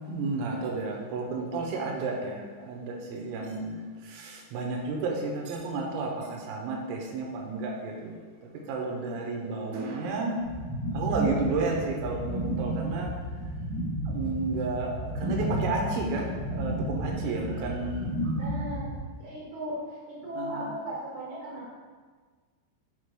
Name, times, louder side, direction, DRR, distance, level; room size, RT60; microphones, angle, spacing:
voice 1, 0.1-8.2 8.7-10.4 10.9-13.1 14.1-18.3 20.3-20.7, right 3 dB, 90° right, 0 dB, 3.6 m, -32 dB
voice 2, 9.4-10.1 18.3-18.9 19.2-21.7, right 1 dB, 60° right, -8 dB, 2.5 m, -38 dB
sound 1, 10.4-18.9, right 1 dB, 55° left, 1.7 m, -32 dB
10.0 x 4.6 x 2.2 m, 1.5 s
omnidirectional pair, 5.8 m